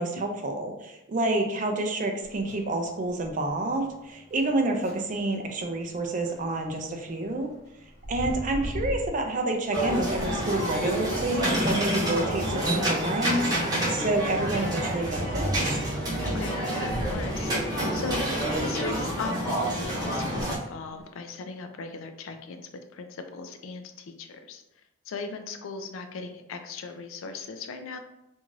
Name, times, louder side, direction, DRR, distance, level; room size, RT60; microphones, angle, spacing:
voice 1, 0.0-7.5 8.1-15.8, right 2 dB, 35° right, 4 dB, 0.4 m, -29 dB
sound 1, 2.2-21.0, left 1 dB, 55° left, 1.1 m, -40 dB
sound 2, 9.7-20.6, right 1 dB, 20° right, 0.8 m, -28 dB
voice 2, 16.2-18.3 18.6-22.6 22.9-24.6 25.1-28.0, left 4 dB, 70° left, 7 dB, 0.3 m, -38 dB
2.5 x 2.3 x 3.1 m, 0.88 s
head